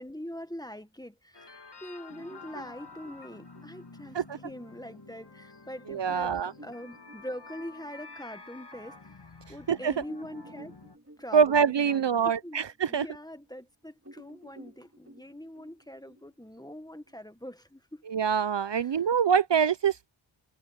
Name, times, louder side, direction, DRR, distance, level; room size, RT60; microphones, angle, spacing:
voice 1, 0.0-9.2 9.5-10.7 11.2-18.0 18.7-19.1, equal, 10° left, 1.5 m, -43 dB
sound 1, 1.3-11.0, left 3 dB, 50° left, 2.3 m, -50 dB
sound 2, 2.1-9.1 9.6-9.7 10.0-13.7 14.0-17.1, right 1 dB, 30° right, 3.7 m, -54 dB
voice 2, 5.9-6.5 9.7-9.9 11.3-13.0 18.1-20.1, right 7 dB, 60° right, 0.6 m, -25 dB
wide cardioid pair, 45°, 50 cm